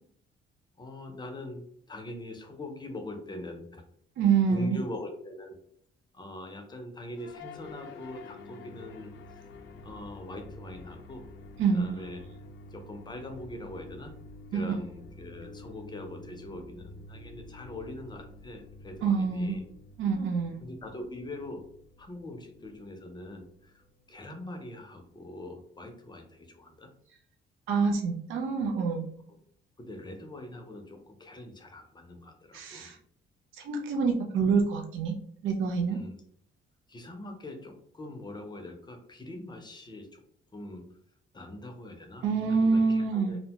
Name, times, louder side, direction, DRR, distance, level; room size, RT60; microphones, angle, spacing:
voice 1, 0.8-3.8 4.5-5.6 6.1-9.1 9.8-11.3 11.7-12.3 12.7-14.1 14.5-19.6 20.6-21.6 22.0-26.9 29.8-32.9 35.9-36.2 36.9-40.2 40.5-40.8 41.3-43.4, left 1 dB, 20° left, 4 dB, 0.6 m, -42 dB
voice 2, 4.2-4.8 11.6-11.9 14.5-14.7 19.0-19.5 20.0-20.6 27.7-29.1 32.5-33.0 33.5-35.1 35.4-36.0 42.2-43.4, right 5 dB, 80° right, 1 dB, 0.5 m, -26 dB
sound 1, 7.1-25.5, left 2 dB, 70° left, 0.5 m, -49 dB
2.7 x 2.1 x 2.8 m, 0.65 s
cardioid pair, 90°, 20 cm